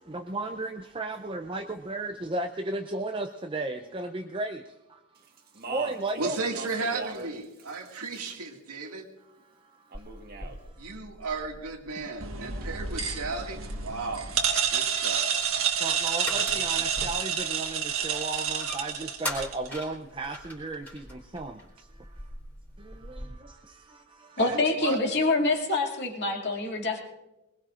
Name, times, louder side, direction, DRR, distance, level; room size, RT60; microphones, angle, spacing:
voice 1, 0.1-4.6 5.7-6.4 15.8-21.5, right 2 dB, 25° right, 0.5 m, -34 dB
Speech, 5.4-7.3 7.6-8.5 9.9-10.6, right 3 dB, 40° right, 1.6 m, -40 dB
voice 2, 6.2-9.1 10.8-14.3 14.7-15.4 24.4-25.0, right 3 dB, 90° right, 2.1 m, -34 dB
sound 1, 9.9-23.3, left 1 dB, 10° left, 3.6 m, -43 dB
sound 2, 12.2-19.7, right 7 dB, 65° right, 1.6 m, -29 dB
voice 3, 24.4-27.0, left 2 dB, 50° left, 2.5 m, -26 dB
22.5 x 20.5 x 2.5 m
head